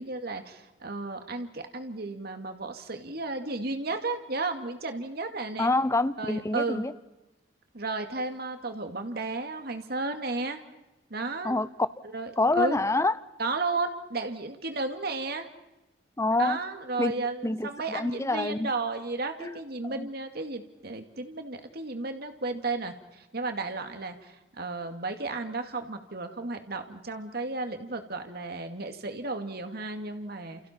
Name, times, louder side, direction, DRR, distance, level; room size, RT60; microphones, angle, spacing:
voice 1, 0.0-5.7 6.2-6.8 7.7-10.6 11.1-11.6 12.1-12.8 13.4-15.5 16.4-30.6, right 3 dB, 60° right, 6 dB, 2.3 m, -33 dB
voice 2, 5.6-6.9 11.4-11.9 12.4-13.1 16.2-16.6 17.0-18.7 19.4-19.6 19.8-20.1, left 2 dB, 15° left, 15 dB, 0.8 m, -27 dB
30.0 x 29.0 x 4.5 m, 0.97 s
head